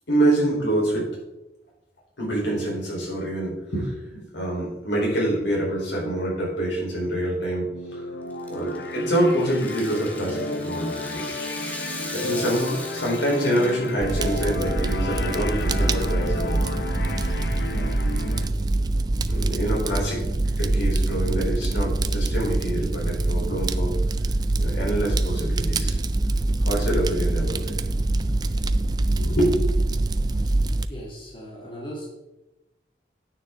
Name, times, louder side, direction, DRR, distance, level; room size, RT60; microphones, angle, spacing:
voice 1, 0.1-1.1 2.2-8.0 8.5-11.8 12.1-16.6 17.7-17.9 19.3-24.0 24.6-26.0 26.6-27.8 29.2-29.7, right 1 dB, 90° left, -3 dB, 4.1 m, -26 dB
sound 1, 7.4-18.5, left 2 dB, 65° left, 0.7 m, -33 dB
Rattle (instrument), 8.3-14.5, left 1 dB, 10° left, 1.0 m, -39 dB
Fire, 14.0-30.8, right 2 dB, 25° right, 0.3 m, -24 dB
voice 2, 30.3-30.6 30.9-32.1, equal, 30° left, -3 dB, 2.0 m, -39 dB
9.8 x 9.2 x 3.7 m, 0.97 s
head